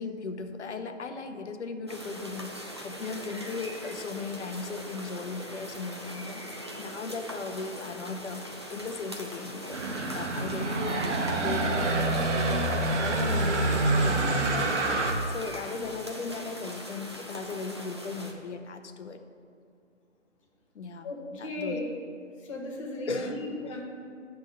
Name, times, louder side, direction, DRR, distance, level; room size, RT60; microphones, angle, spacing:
voice 1, 0.0-8.5 8.7-14.8 15.3-19.2 20.7-21.1 21.4-21.8 23.1-23.8, left 4 dB, 65° left, 7 dB, 0.8 m, -37 dB
sound 1, 1.9-18.3, equal, 25° right, 0.4 m, -41 dB
sound 2, 9.7-15.1, right 2 dB, 65° right, 1.2 m, -27 dB
voice 2, 21.0-21.9 22.4-23.9, left 2 dB, 25° left, -1 dB, 1.1 m, -35 dB
10.0 x 3.6 x 6.4 m, 2.3 s
figure-of-eight pair, 145°, 38 cm